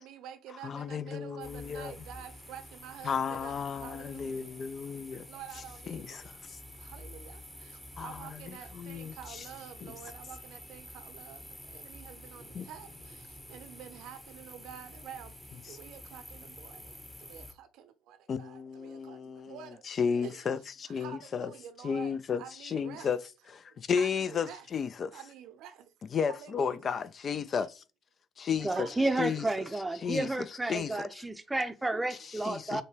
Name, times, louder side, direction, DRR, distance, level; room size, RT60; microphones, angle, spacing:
voice 1, 0.0-4.5 5.3-6.3 6.8-15.3 15.7-20.5 20.8-23.1 23.7-24.7 25.1-25.9 26.3-26.9 27.6-27.7 28.7-29.3 31.0-31.4 32.3-32.5, right 9 dB, 70° right, 0.6 m, -49 dB
voice 2, 0.6-1.9 3.0-5.3 5.9-6.2 6.5-6.6 8.0-8.1 8.7-9.1 12.5-12.7 18.3-19.6 19.9-21.5 21.8-23.2 23.5-25.2 26.1-27.8 28.4-28.9 29.2-29.5 30.0-30.3 30.7-31.0 32.2-32.8, left 6 dB, 45° left, 0.4 m, -33 dB
sound 1, 1.4-17.5, left 1 dB, 10° left, 0.9 m, -49 dB
voice 3, 28.6-32.8, right 2 dB, 15° right, 0.6 m, -31 dB
6.3 x 2.2 x 3.3 m
hypercardioid pair, 60°, 0 cm